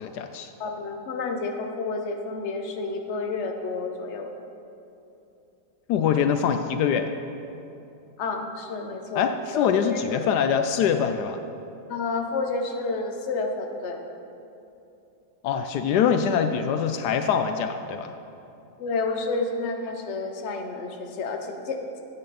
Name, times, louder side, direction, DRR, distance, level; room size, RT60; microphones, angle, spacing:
voice 1, 0.0-0.5 5.9-7.1 9.2-11.4 15.4-18.1, left 7 dB, 80° left, 8 dB, 1.1 m, -24 dB
voice 2, 0.6-4.3 8.2-9.3 9.5-10.0 10.6-10.7 11.9-14.0 18.8-22.0, left 3 dB, 50° left, 4 dB, 1.2 m, -30 dB
15.0 x 8.7 x 4.1 m, 2.8 s
omnidirectional pair, 1.7 m